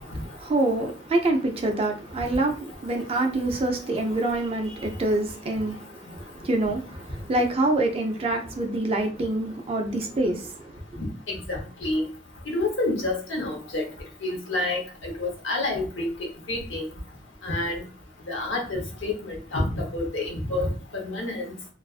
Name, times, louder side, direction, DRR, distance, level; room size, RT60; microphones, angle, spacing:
voice 1, 0.4-5.8 6.4-10.5, right 2 dB, 30° right, 0.3 m, -25 dB
voice 2, 11.0-12.0 12.5-13.9 14.2-16.1 16.5-16.9 17.4-17.8 18.3-21.5, left 2 dB, 80° left, 0.8 m, -28 dB
2.4 x 2.4 x 2.3 m
head